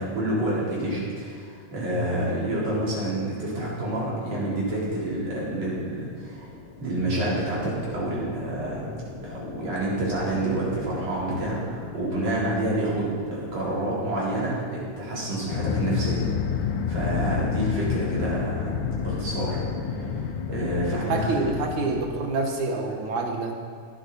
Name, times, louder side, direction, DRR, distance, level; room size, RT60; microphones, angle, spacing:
voice 1, 0.0-6.5 6.8-8.9 9.2-16.2 16.5-21.4, right 1 dB, 60° right, -7 dB, 5.1 m, -28 dB
sound 1, 3.8-20.2, left 3 dB, 55° left, 1.9 m, -42 dB
sound 2, 15.5-22.1, left 7 dB, 85° left, 2.4 m, -29 dB
voice 2, 20.9-23.5, right 3 dB, 85° right, 2 dB, 3.0 m, -27 dB
18.0 x 11.5 x 4.3 m, 2.3 s
omnidirectional pair, 3.3 m